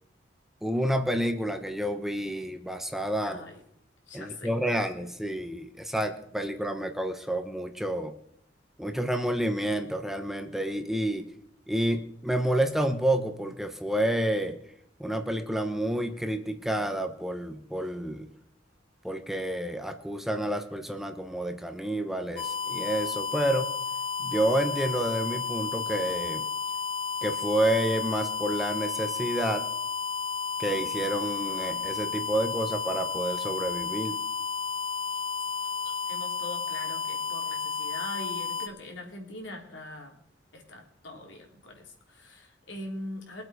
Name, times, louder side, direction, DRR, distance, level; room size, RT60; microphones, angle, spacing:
voice 1, 0.6-3.4 4.1-8.1 8.8-11.3 11.7-14.6 15.0-18.3 19.0-23.7 24.2-26.4 27.2-29.7 30.6-34.2, right 1 dB, ahead, 6 dB, 1.0 m, -29 dB
voice 2, 3.2-3.6 4.1-4.8 35.0-40.2 40.5-43.4, left 1 dB, 80° left, 1 dB, 3.4 m, -43 dB
sound 1, 22.4-38.7, left 6 dB, 30° left, 1.2 m, -32 dB
23.0 x 7.9 x 5.0 m, 0.70 s
head